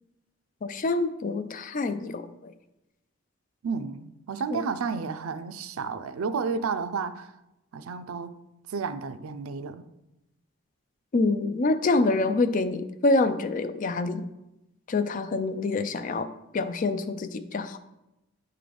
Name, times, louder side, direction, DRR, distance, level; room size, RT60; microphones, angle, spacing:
voice 1, 0.6-2.5 4.5-4.6 11.1-14.2 14.9-16.3 16.5-17.8, left 3 dB, 40° left, 0.4 m, -26 dB
voice 2, 3.6-7.3 7.7-8.4 8.7-9.9, right 5 dB, 85° right, 0.4 m, -32 dB
9.5 x 3.8 x 3.4 m
head